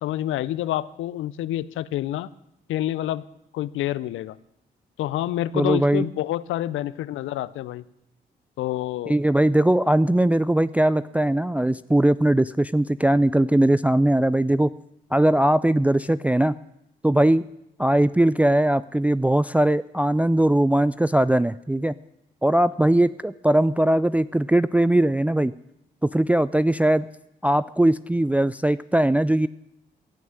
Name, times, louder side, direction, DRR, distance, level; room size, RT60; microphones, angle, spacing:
voice 1, 0.0-2.3 2.7-3.2 3.5-4.4 5.0-7.8 8.6-9.2, left 13 dB, 80° left, 17 dB, 0.5 m, -28 dB
voice 2, 5.5-6.1 9.1-14.7 15.1-16.6 17.0-17.5 17.8-21.9 22.4-25.5 26.0-27.1 27.4-29.5, right 1 dB, 5° right, 15 dB, 0.4 m, -20 dB
17.0 x 6.2 x 8.8 m, 0.82 s
supercardioid pair, 45°, 20 cm